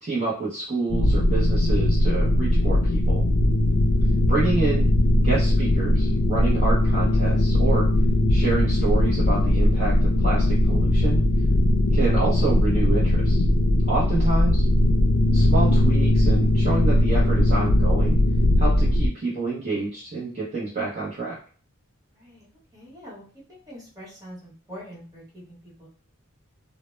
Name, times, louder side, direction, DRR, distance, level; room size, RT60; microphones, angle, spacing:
voice 1, 0.0-3.2 4.3-4.9 5.2-7.9 8.3-11.2 11.9-13.4 13.9-14.6 15.3-18.2 18.6-21.4, right 3 dB, 35° right, -7 dB, 0.6 m, -28 dB
sound 1, 0.9-19.1, left 1 dB, 85° left, 0.4 m, -19 dB
voice 2, 3.7-4.0 14.2-14.4 22.1-22.5 22.7-23.2 23.5-25.9, equal, 15° right, -6 dB, 1.0 m, -44 dB
2.0 x 2.0 x 3.0 m, 0.43 s
head